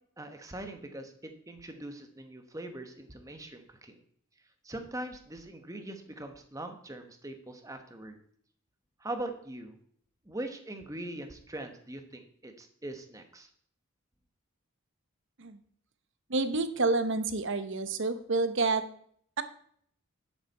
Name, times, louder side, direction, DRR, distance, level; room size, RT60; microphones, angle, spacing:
voice 1, 0.2-4.0 4.6-8.2 9.0-9.8 10.3-13.5, right 1 dB, 15° right, 6 dB, 1.1 m, -41 dB
voice 2, 16.3-18.8, right 3 dB, 55° right, 10 dB, 0.9 m, -28 dB
11.0 x 8.1 x 4.1 m, 0.63 s
head